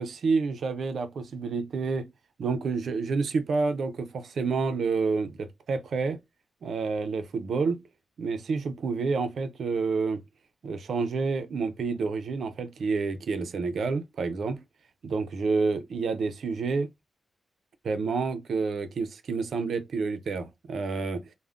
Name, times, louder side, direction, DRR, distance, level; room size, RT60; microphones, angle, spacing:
voice 1, 0.0-2.1 2.4-6.2 6.6-7.8 8.2-10.2 10.6-14.6 15.0-16.9 17.8-21.2, right 4 dB, 70° right, 0.5 m, -29 dB
3.4 x 2.1 x 2.4 m
wide cardioid pair, 105°, 0 cm